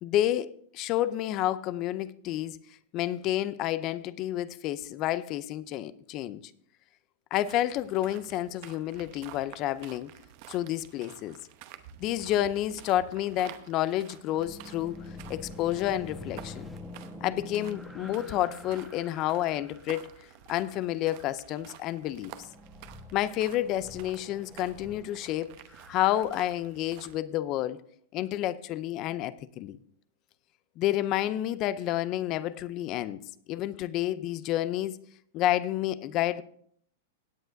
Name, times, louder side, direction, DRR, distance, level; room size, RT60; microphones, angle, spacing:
voice 1, 0.0-2.6 2.9-6.4 7.3-10.1 10.5-11.4 12.0-15.0 15.3-16.7 17.2-20.1 20.5-22.3 23.1-25.5 25.9-27.8 28.1-29.8 30.8-35.0 35.3-36.4, left 13 dB, 35° left, 0.5 m, -30 dB
sound 1, 7.4-27.2, right 11 dB, 45° right, 0.8 m, -51 dB
sound 2, 14.3-20.3 22.3-26.2, left 2 dB, ahead, 1.2 m, -46 dB
17.0 x 8.9 x 2.6 m
supercardioid pair, 150°, 0 cm